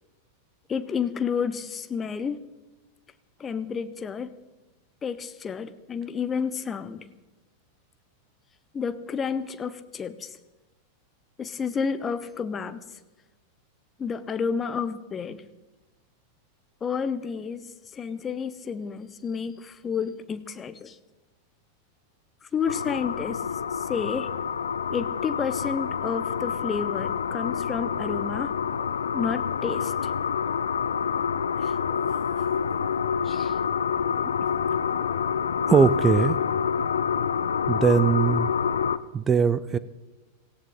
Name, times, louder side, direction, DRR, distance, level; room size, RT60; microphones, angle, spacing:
voice 1, 0.7-2.4 3.4-4.3 5.0-7.1 8.7-10.3 11.4-12.8 14.0-15.4 16.8-17.7 17.9-21.0 22.5-23.4 23.8-24.3 24.9-28.5 29.1-30.1 31.6-32.0 33.2-33.5, left 6 dB, 20° left, 13 dB, 1.0 m, -30 dB
sound 1, 22.7-39.0, left 7 dB, 70° left, 0.6 m, -27 dB
voice 2, 35.7-36.4 37.7-38.5 39.1-39.8, right 6 dB, 20° right, 16 dB, 0.6 m, -20 dB
18.0 x 16.5 x 4.0 m, 1.1 s
figure-of-eight pair, 90°, 0 cm